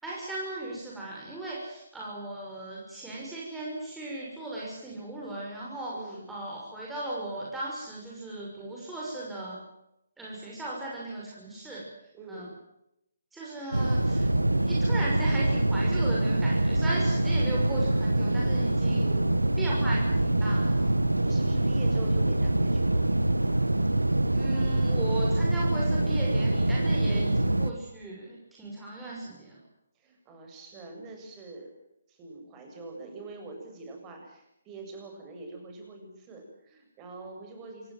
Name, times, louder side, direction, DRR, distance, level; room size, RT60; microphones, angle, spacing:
voice 1, 0.0-6.0 6.3-9.6 10.2-11.9 12.3-12.5 13.3-14.3 14.6-19.1 19.6-20.9 24.3-29.6, right 2 dB, 5° right, -5 dB, 6.3 m, -37 dB
voice 2, 5.9-6.2 12.1-12.5 13.4-13.6 17.1-17.6 19.0-19.3 20.8-23.1 27.1-27.4 29.9-31.7 32.1-37.9, right 2 dB, 20° right, 3 dB, 7.8 m, -44 dB
sound 1, 13.7-27.7, right 1 dB, 90° right, 1.4 m, -25 dB
27.5 x 18.0 x 7.7 m, 0.82 s
figure-of-eight pair, 140°, 0 cm